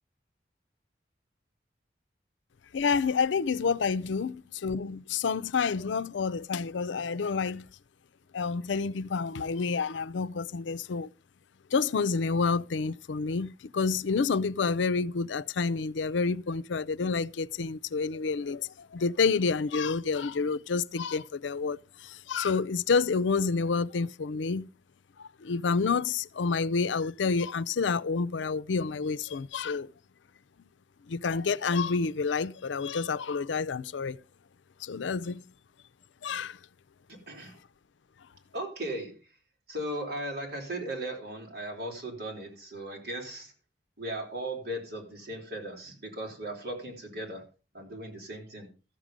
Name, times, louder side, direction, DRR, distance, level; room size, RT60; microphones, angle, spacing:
voice 1, 2.7-4.4 4.6-7.7 8.3-11.1 11.7-24.7 25.2-29.9 31.1-34.2 34.8-35.4 36.2-36.6, left 5 dB, 90° left, 0.5 m, -29 dB
voice 2, 37.1-37.6 38.5-39.1 39.7-43.5 44.0-47.4 47.7-48.7, right 1 dB, 60° right, 4.0 m, -37 dB
13.5 x 7.4 x 5.1 m
head